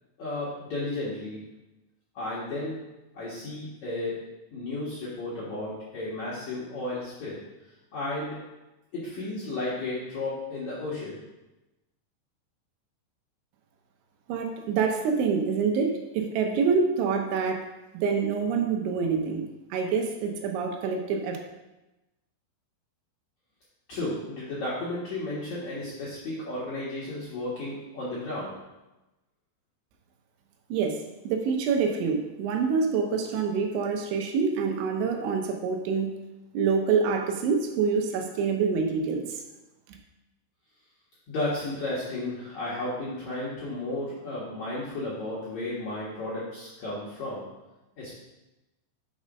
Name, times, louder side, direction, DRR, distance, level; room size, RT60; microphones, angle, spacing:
voice 1, 0.2-1.4 2.2-2.8 3.1-4.1 4.5-7.4 7.9-8.4 8.9-11.2 23.9-28.5 41.3-47.4 48.0-48.1, left 2 dB, 65° left, -9 dB, 1.8 m, -33 dB
voice 2, 14.3-17.7 17.9-21.4 30.7-36.1 36.5-39.4, right 5 dB, 80° right, 3 dB, 3.1 m, -26 dB
6.3 x 5.4 x 5.1 m, 1.0 s
omnidirectional pair, 5.5 m